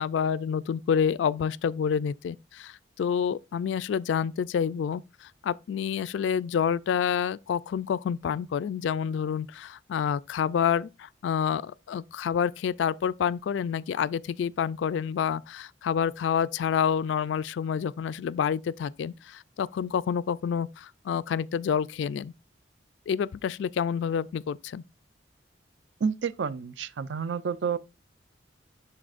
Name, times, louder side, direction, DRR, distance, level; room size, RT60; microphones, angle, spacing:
voice 1, 0.0-22.3 23.1-24.8, left 7 dB, 75° left, 0.3 m, -28 dB
voice 2, 26.0-27.8, right 6 dB, 70° right, 0.5 m, -29 dB
11.5 x 4.2 x 2.4 m
head